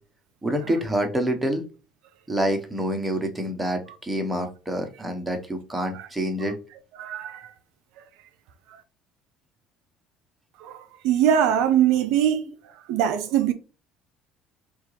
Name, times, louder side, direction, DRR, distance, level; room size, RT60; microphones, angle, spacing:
voice 1, 0.4-1.6 2.3-6.6, equal, 10° right, 0.9 m, -27 dB
voice 2, 6.9-7.5 8.0-8.1 10.6-12.4 12.9-13.5, right 10 dB, 75° right, 0.4 m, -22 dB
3.6 x 2.4 x 3.1 m
supercardioid pair, 85°, 0 cm